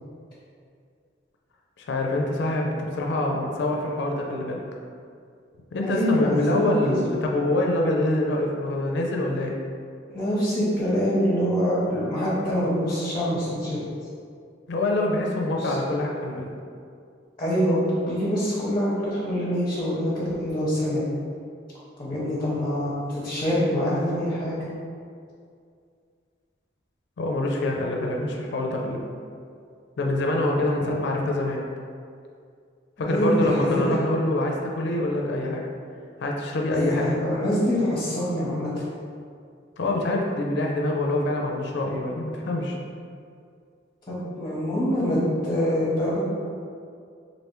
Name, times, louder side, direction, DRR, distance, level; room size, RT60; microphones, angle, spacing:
voice 1, 1.8-4.6 5.7-9.5 14.7-16.5 27.2-29.0 30.0-31.6 33.0-35.6 36.2-37.1 37.7-37.8 39.8-42.8, left 1 dB, 65° left, 0 dB, 0.4 m, -25 dB
voice 2, 5.8-7.1 10.1-13.8 15.6-15.7 17.4-21.0 22.0-24.6 30.8-31.0 33.1-33.9 36.7-37.1 37.4-38.7 44.1-46.2, equal, 25° left, -8 dB, 0.7 m, -25 dB
3.3 x 2.6 x 3.0 m, 2.3 s
head